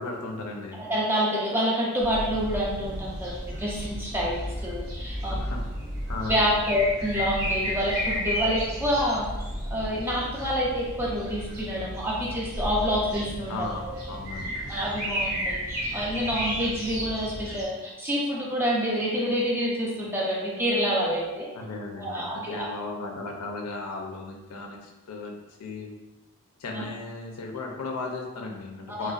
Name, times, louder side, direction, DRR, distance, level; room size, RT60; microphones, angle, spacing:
voice 1, 0.0-0.8 5.3-5.6 6.1-6.4 13.5-14.6 21.5-25.9 26.6-29.1, left 3 dB, 85° left, 0 dB, 0.5 m, -36 dB
voice 2, 0.8-5.4 6.3-9.3 9.7-14.0 14.7-21.5 22.0-22.6 26.7-26.8 28.9-29.1, equal, 10° right, -5 dB, 0.4 m, -27 dB
sound 1, 2.0-17.6, equal, 40° right, 0.7 m, -33 dB
2.5 x 2.2 x 2.3 m, 1.1 s
head